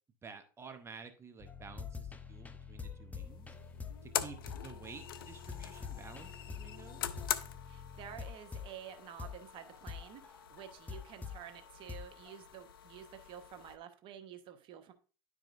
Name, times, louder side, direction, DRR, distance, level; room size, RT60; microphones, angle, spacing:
voice 1, 0.2-3.5 4.0-7.1, right 5 dB, 25° right, 7 dB, 0.8 m, -52 dB
sound 1, 1.4-11.4 11.9-12.3, left 6 dB, 15° left, 0.5 m, -46 dB
sound 2, 3.1-13.8, left 10 dB, 85° left, 0.5 m, -44 dB
voice 2, 7.7-14.9, right 9 dB, 45° right, 8 dB, 1.0 m, -50 dB
10.0 x 4.9 x 2.5 m, 0.37 s
hypercardioid pair, 90°, 12 cm